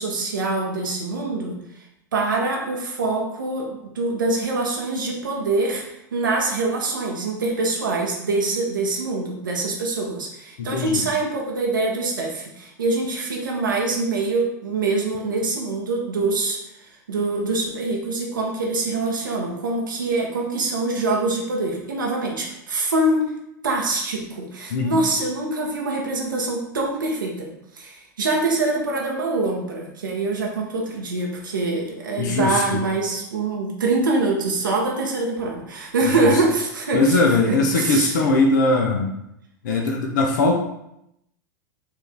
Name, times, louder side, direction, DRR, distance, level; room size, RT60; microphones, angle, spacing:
voice 1, 0.0-1.6 2.1-23.3 23.6-27.5 27.7-38.2, right 3 dB, 85° right, -1 dB, 0.7 m, -24 dB
voice 2, 10.6-11.0 24.7-25.0 32.2-32.8 36.0-36.3 36.9-39.1 39.6-40.5, left 3 dB, 70° left, 2 dB, 0.6 m, -20 dB
4.6 x 2.6 x 3.3 m, 0.81 s
hypercardioid pair, 100°, 10 cm